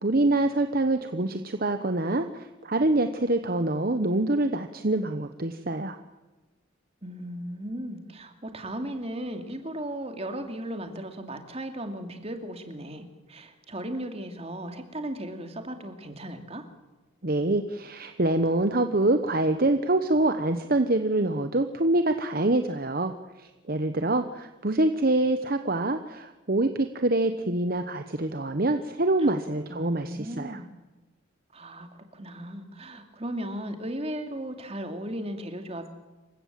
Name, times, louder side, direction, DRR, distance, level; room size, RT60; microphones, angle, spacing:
voice 1, 0.0-6.0 17.2-30.6, right 2 dB, 45° right, 8 dB, 1.0 m, -25 dB
voice 2, 7.0-16.6 29.2-29.3 29.7-30.7 31.5-35.9, right 1 dB, 30° right, 6 dB, 2.5 m, -36 dB
27.5 x 16.0 x 7.6 m, 1.2 s
head